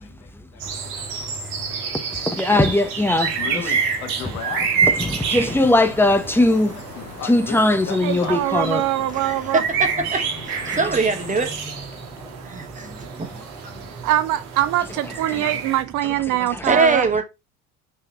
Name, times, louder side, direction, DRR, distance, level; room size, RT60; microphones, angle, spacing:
voice 1, 0.0-1.4 2.4-2.5 3.4-4.8 5.4-5.8 6.3-6.4 6.9-8.5 10.7-11.2 11.5-11.9 12.1-12.4 13.0-14.1 16.5-16.7, left 8 dB, 65° left, 1.4 m, -38 dB
sound 1, 0.6-15.8, right 6 dB, 70° right, 1.6 m, -28 dB
voice 2, 2.3-3.7 4.8-6.8 7.2-8.8 10.7-11.0 11.6-13.9 15.3-15.6 16.3-16.8, left 1 dB, 5° left, 1.0 m, -22 dB
sound 2, 5.2-11.5, left 5 dB, 85° left, 0.9 m, -41 dB
voice 3, 8.0-9.6 14.0-17.1, right 14 dB, 45° right, 0.6 m, -23 dB
voice 4, 9.2-11.5 12.5-12.9 16.6-17.2, right 3 dB, 15° right, 1.4 m, -22 dB
5.6 x 4.5 x 4.0 m
figure-of-eight pair, 65°, 46 cm